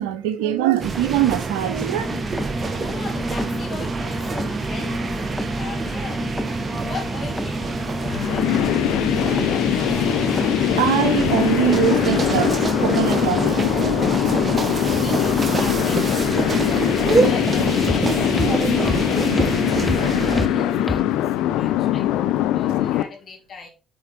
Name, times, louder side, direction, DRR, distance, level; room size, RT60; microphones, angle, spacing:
voice 1, 0.0-2.0 10.8-14.3 14.7-14.8, right 11 dB, 75° right, 0.7 m, -23 dB
sound 1, 0.8-20.5, right 4 dB, 35° right, 1.2 m, -26 dB
sound 2, 1.9-21.0, left 1 dB, 15° left, 0.8 m, -30 dB
voice 2, 2.6-6.2 6.9-8.5 14.1-23.7, left 5 dB, 45° left, 2.9 m, -40 dB
sound 3, 8.1-23.0, left 13 dB, 65° left, 0.5 m, -22 dB
7.5 x 4.7 x 4.3 m
figure-of-eight pair, 50°, 0 cm